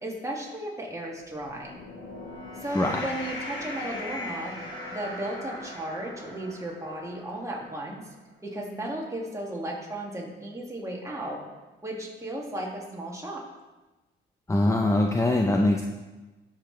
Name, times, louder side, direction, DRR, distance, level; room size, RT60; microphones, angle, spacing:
voice 1, 0.0-1.8 2.6-4.6 4.9-8.0 8.4-11.4 11.8-13.4, right 1 dB, 15° right, -2 dB, 2.2 m, -35 dB
sound 1, 1.4-7.9, left 1 dB, 75° left, 2.8 m, -39 dB
voice 2, 14.5-15.8, left 1 dB, 15° left, 1 dB, 0.7 m, -22 dB
13.0 x 5.9 x 3.3 m, 1.2 s
cardioid pair, 90°, 20 cm